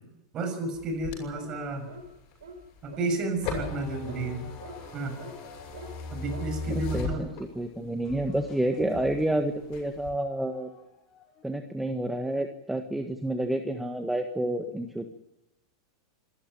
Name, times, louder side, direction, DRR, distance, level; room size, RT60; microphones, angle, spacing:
voice 1, 0.3-1.9 2.8-4.5 4.9-5.2 6.1-7.3, right 2 dB, 35° right, 7 dB, 6.3 m, -31 dB
sound 1, 0.7-7.8 8.3-9.3 9.6-10.1, left 3 dB, 45° left, 7.8 m, -38 dB
sound 2, 1.4-1.6 1.9-2.1 2.4-2.6 2.9-3.1 3.5-3.7 4.1-4.2 4.6-4.8 5.2-5.3 5.7-5.9 6.3-6.5, right 4 dB, 75° right, 4.3 m, -44 dB
sound 3, 5.7-7.5 8.0-11.4, left 4 dB, 30° left, 6.1 m, -51 dB
voice 2, 6.7-7.3 7.5-10.7 11.4-15.1, right 1 dB, 5° right, 5 dB, 1.6 m, -29 dB
26.5 x 13.5 x 9.1 m, 0.92 s
hypercardioid pair, 95°, 2 cm